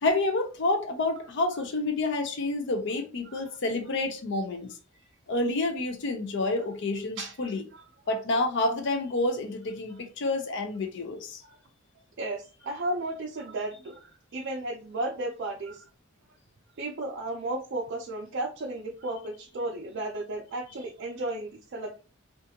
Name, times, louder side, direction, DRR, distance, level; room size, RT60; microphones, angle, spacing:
voice 1, 0.0-4.8 5.3-7.6 8.1-11.4, left 2 dB, 60° left, 0.5 m, -29 dB
voice 2, 7.2-7.8 11.4-11.6 12.2-15.9 16.8-22.0, right 2 dB, 55° right, 0.4 m, -34 dB
2.5 x 2.3 x 2.7 m
head